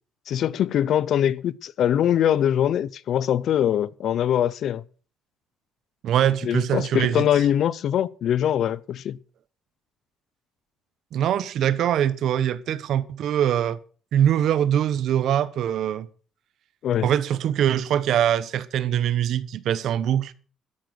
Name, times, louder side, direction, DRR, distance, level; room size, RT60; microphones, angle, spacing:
voice 1, 0.3-4.8 6.4-9.2 16.8-17.1, left 10 dB, 60° left, 0.7 m, -23 dB
voice 2, 6.0-7.2 11.1-13.8 14.1-16.1 17.0-20.3, right 10 dB, 65° right, 1.1 m, -23 dB
13.0 x 10.5 x 6.6 m
cardioid pair, 150°, 0 cm